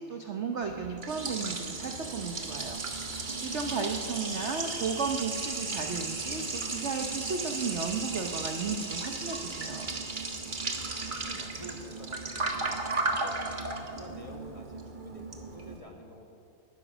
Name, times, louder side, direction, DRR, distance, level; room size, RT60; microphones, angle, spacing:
voice 1, 0.0-2.8 3.1-9.9, right 5 dB, 50° right, 4 dB, 0.9 m, -34 dB
Liquid, 0.6-15.8, right 3 dB, 30° right, 1.2 m, -35 dB
voice 2, 4.0-4.9 11.1-13.5 13.9-16.3, left 1 dB, 20° left, 1 dB, 1.4 m, -49 dB
19.5 x 10.5 x 6.1 m, 2.6 s
omnidirectional pair, 2.1 m